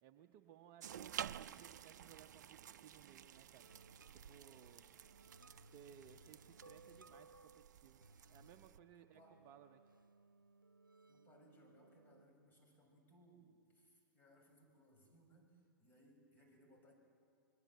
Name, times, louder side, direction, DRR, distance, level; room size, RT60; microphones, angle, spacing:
voice 1, 0.0-3.7 4.1-4.9 5.6-9.9, right 10 dB, 35° right, 6 dB, 0.9 m, -62 dB
sound 1, 0.8-8.8, right 9 dB, 60° right, 0.6 m, -52 dB
sound 2, 3.6-12.2, right 3 dB, 85° right, 0.9 m, -64 dB
voice 2, 5.8-6.6 8.9-9.5 11.1-16.9, right 1 dB, 20° left, 1 dB, 6.9 m, -68 dB
26.5 x 21.0 x 7.8 m, 2.3 s
figure-of-eight pair, 105°, 11 cm